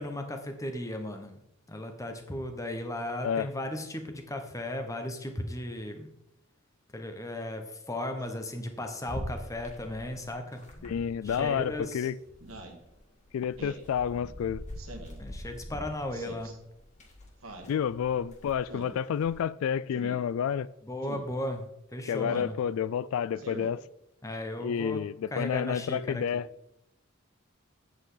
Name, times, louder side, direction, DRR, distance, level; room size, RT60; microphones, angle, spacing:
voice 1, 0.0-1.4 1.7-6.1 6.9-10.6 11.2-12.0 15.2-16.6 20.8-21.7 21.9-22.5 24.2-25.0 25.3-26.2, left 1 dB, 15° left, 1.1 m, -36 dB
sound 1, 9.1-11.9 12.2-19.4, equal, 35° left, 2.0 m, -44 dB
voice 2, 10.8-12.2 13.3-14.6 17.6-20.7 22.1-23.8 24.6-26.5, left 8 dB, 80° left, 0.3 m, -30 dB
Speech synthesizer, 11.2-11.6 12.4-12.8 13.6-13.9 14.8-15.2 16.1-16.5 17.4-17.7 18.7-19.0 19.9-20.2 21.0-21.3 22.2-22.5 23.3-23.7, right 2 dB, 80° right, 1.8 m, -44 dB
9.0 x 8.3 x 3.9 m
head